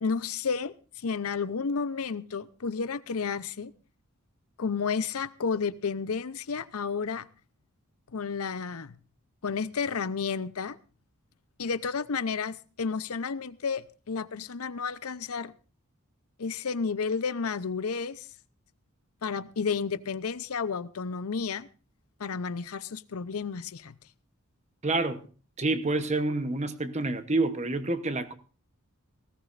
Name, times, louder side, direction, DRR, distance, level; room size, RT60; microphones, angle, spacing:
voice 1, 0.0-3.7 4.6-7.3 8.1-9.0 9.4-10.8 11.6-15.5 16.4-18.3 19.2-21.7 22.2-23.9, left 5 dB, 85° left, 0.7 m, -31 dB
voice 2, 24.8-25.2 25.6-28.3, right 2 dB, 30° right, 0.9 m, -28 dB
18.5 x 17.0 x 2.5 m
head